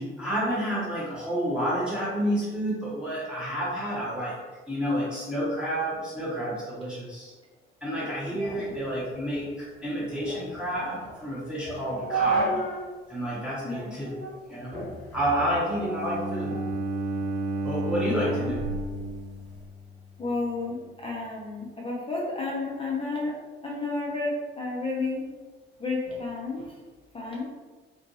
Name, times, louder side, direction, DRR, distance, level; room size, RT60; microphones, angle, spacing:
voice 1, 0.0-4.4 4.7-7.3 7.8-12.6 13.1-14.1 14.5-14.8 15.1-16.6 17.6-18.6, equal, 5° right, -8 dB, 1.0 m, -30 dB
sound 1, 8.5-12.9 13.3-13.4 14.0-14.4 14.7-16.8 17.2-19.6, right 3 dB, 90° left, 0.8 m, -33 dB
Bowed string instrument, 15.8-19.8, right 2 dB, 25° right, 0.4 m, -31 dB
voice 2, 18.0-18.5 20.2-23.4 23.6-25.3 25.8-26.8 27.1-27.5, left 3 dB, 20° left, -4 dB, 0.6 m, -32 dB
2.6 x 2.2 x 2.7 m, 1.3 s
figure-of-eight pair, 50°, 31 cm